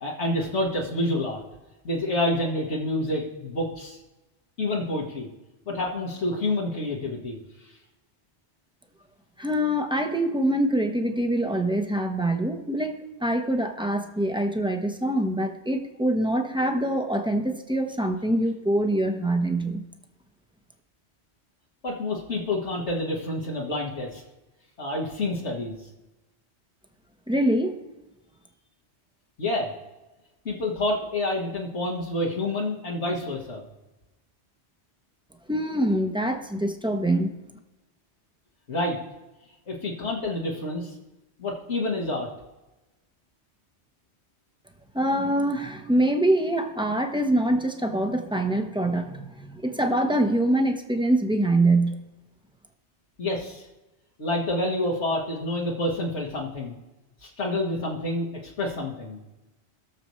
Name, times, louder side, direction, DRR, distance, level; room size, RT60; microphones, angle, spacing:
voice 1, 0.0-1.4 1.8-4.0 4.6-5.3 5.7-7.4 21.8-24.2 24.8-25.8 29.4-29.7 30.5-33.6 38.7-39.0 39.7-40.9 41.4-42.3 53.2-53.7 54.2-56.7 57.2-59.2, left 1 dB, 85° left, -3 dB, 2.0 m, -28 dB
voice 2, 9.4-19.8 27.3-27.8 35.5-37.3 44.9-52.0, right 1 dB, 5° right, 4 dB, 0.9 m, -24 dB
20.5 x 6.9 x 3.2 m, 1.0 s
omnidirectional pair, 1.1 m